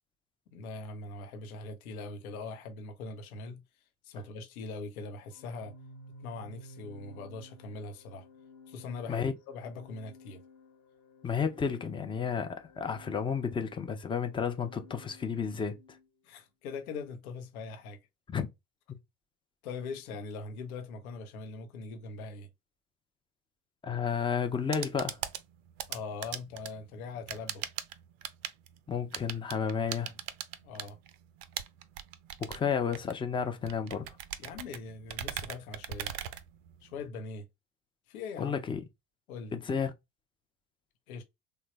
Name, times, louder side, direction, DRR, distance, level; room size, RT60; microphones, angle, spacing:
voice 1, 0.5-3.6 4.0-5.7 6.2-8.3 8.7-10.4 16.2-18.0 19.6-22.5 25.9-27.6 30.6-31.0 32.5-32.7 34.4-36.1 36.8-37.5 38.1-38.6 39.3-39.6 41.1-41.2, left 4 dB, 70° left, 0.7 m, -41 dB
Organ, 5.3-16.1, left 1 dB, 40° left, 1.1 m, -54 dB
voice 2, 11.2-15.8 18.3-18.5 18.9-19.0 23.8-25.2 28.9-30.1 32.4-34.1 38.4-38.8 39.5-39.9, left 6 dB, 10° left, 0.4 m, -32 dB
sound 1, 24.5-37.1, right 11 dB, 60° right, 0.5 m, -41 dB
3.2 x 2.2 x 2.9 m
figure-of-eight pair, 60°, 45 cm